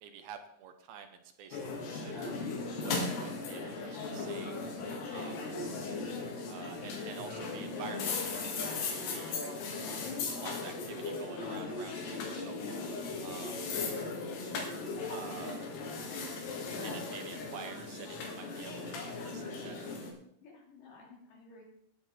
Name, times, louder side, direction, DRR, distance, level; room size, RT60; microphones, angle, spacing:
voice 1, 0.0-2.4 2.8-4.6 5.1-5.4 6.5-9.4 10.3-12.6 13.2-13.6 15.1-15.7 16.8-19.9, right 7 dB, 75° right, 7 dB, 2.7 m, -48 dB
sound 1, 1.5-20.1, left 3 dB, 85° left, 4.0 m, -37 dB
voice 2, 20.4-21.6, left 6 dB, 60° left, -1 dB, 4.2 m, -49 dB
18.5 x 7.8 x 4.3 m, 0.70 s
omnidirectional pair, 4.5 m